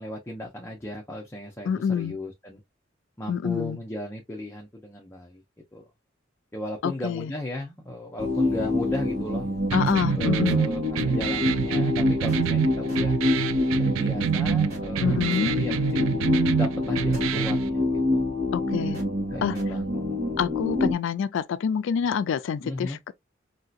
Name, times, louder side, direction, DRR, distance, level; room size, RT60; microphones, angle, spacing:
voice 1, 0.0-2.6 3.2-5.4 5.7-5.9 6.5-9.5 10.1-13.2 13.8-15.7 16.6-18.3 19.3-19.9 22.6-23.0, left 1 dB, 15° left, 0.6 m, -35 dB
voice 2, 1.7-2.2 3.3-3.8 6.8-7.3 9.7-10.6 15.0-15.5 18.5-19.0 19.4-19.6 20.4-23.2, left 7 dB, 65° left, 0.3 m, -26 dB
sound 1, 8.2-20.9, left 2 dB, 50° right, 1.8 m, -26 dB
sound 2, 9.7-17.7, right 8 dB, 85° right, 0.3 m, -27 dB
3.2 x 2.7 x 2.4 m
head